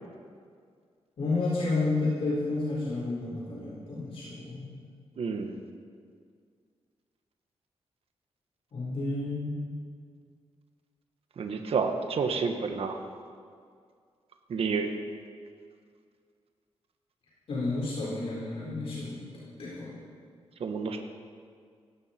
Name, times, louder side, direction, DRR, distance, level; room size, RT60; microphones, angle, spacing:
voice 1, 1.2-4.8 8.7-9.6 17.5-19.3 19.6-20.0, left 3 dB, 60° left, -7 dB, 4.2 m, -31 dB
voice 2, 5.2-5.6 11.4-12.9 14.5-14.9 20.6-21.0, right 5 dB, 60° right, 5 dB, 1.4 m, -29 dB
17.5 x 16.5 x 4.5 m, 2.1 s
wide cardioid pair, 140°, 11 cm